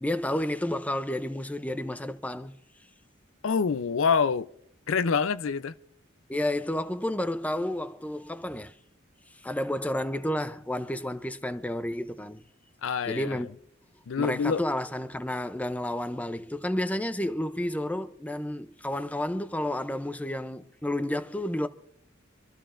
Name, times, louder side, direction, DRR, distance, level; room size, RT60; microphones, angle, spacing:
voice 1, 0.0-2.6 6.3-8.7 9.3-12.4 13.1-13.5 14.2-21.7, left 1 dB, 5° left, 0.5 m, -31 dB
voice 2, 3.4-4.5 4.9-5.7 12.8-13.4 14.1-14.6, left 5 dB, 80° left, 0.5 m, -26 dB
26.5 x 13.0 x 2.5 m
head